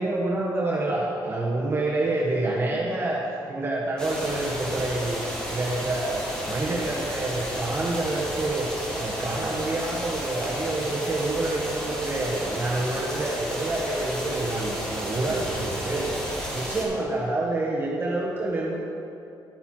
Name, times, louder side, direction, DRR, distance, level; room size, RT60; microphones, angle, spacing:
voice 1, 0.0-6.2 6.5-16.0 16.5-18.8, right 2 dB, 30° right, -4 dB, 1.4 m, -28 dB
sound 1, 4.0-16.8, equal, 10° left, 2.4 m, -32 dB
12.0 x 6.7 x 4.4 m, 2.6 s
cardioid pair, 85°, 8 cm